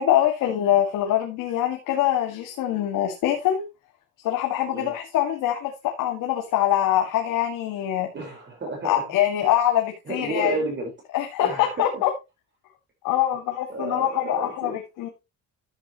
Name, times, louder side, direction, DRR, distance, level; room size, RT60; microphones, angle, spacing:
voice 1, 0.0-3.6 4.2-8.1 8.8-10.6 11.1-12.1 13.0-15.1, left 11 dB, 85° left, 2.0 m, -24 dB
voice 2, 8.1-9.0 10.0-10.9 11.4-12.0 13.7-14.8, right 2 dB, 35° right, 4.8 m, -31 dB
12.5 x 7.9 x 3.0 m
cardioid pair, 115°, 31 cm